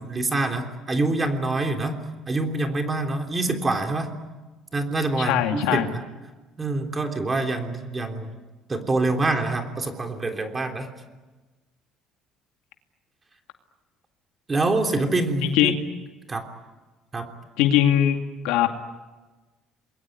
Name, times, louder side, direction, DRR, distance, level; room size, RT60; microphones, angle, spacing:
voice 1, 0.0-2.0 2.3-4.1 4.7-6.0 6.6-8.4 8.7-10.9 14.5-15.7 16.3-16.4 17.1-17.3, right 2 dB, 20° right, 4 dB, 3.4 m, -25 dB
voice 2, 5.2-5.9 15.5-15.7 17.6-18.2 18.4-18.7, left 11 dB, 85° left, 5 dB, 2.4 m, -20 dB
28.0 x 21.5 x 9.5 m, 1.2 s
cardioid pair, 115°, 0 cm